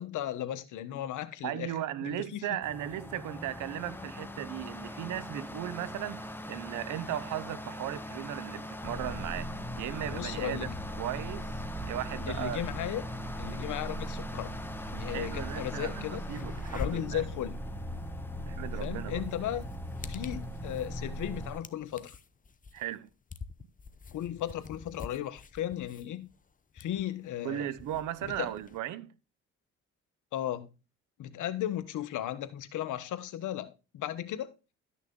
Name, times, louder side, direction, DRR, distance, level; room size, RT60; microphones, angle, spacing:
voice 1, 0.0-1.7 2.0-2.4 10.1-10.7 12.3-13.0 13.4-14.5 14.9-16.2 16.7-17.5 18.8-19.7 20.1-22.1 24.1-26.3 26.7-27.7 28.4-28.5 30.3-30.7 31.2-34.5, left 12 dB, 80° left, 1.2 m, -35 dB
voice 2, 1.4-9.5 9.8-10.7 11.0-11.5 11.8-12.6 15.0-17.2 18.5-19.2 22.7-23.1 27.4-29.1, right 12 dB, 85° right, 0.8 m, -37 dB
sound 1, 2.6-21.6, left 1 dB, 5° left, 1.1 m, -43 dB
sound 2, 8.8-21.5, equal, 10° right, 2.1 m, -39 dB
sound 3, 15.0-15.1 15.4-28.8, left 4 dB, 25° left, 0.8 m, -46 dB
12.0 x 6.4 x 3.8 m
cardioid pair, 90°, 30 cm